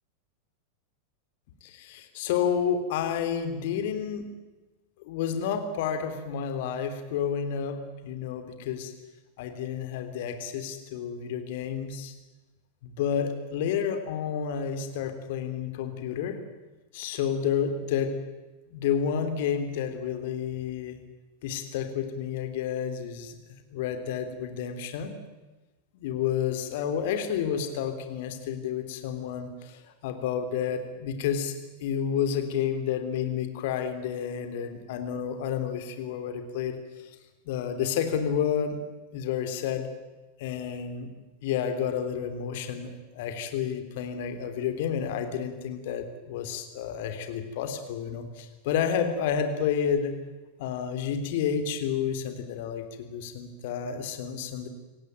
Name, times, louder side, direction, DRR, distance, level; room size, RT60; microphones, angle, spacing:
voice 1, 1.6-4.3 5.0-8.9 9.4-12.1 12.8-16.4 16.9-18.1 18.7-21.0 21.4-23.4 23.7-25.1 25.9-31.5 31.8-37.1 37.4-38.8 39.1-39.9 40.4-41.1 41.4-50.1 50.6-54.7, left 8 dB, 50° left, 7 dB, 3.3 m, -30 dB
27.0 x 17.0 x 9.2 m, 1.2 s
figure-of-eight pair, 90°, 0 cm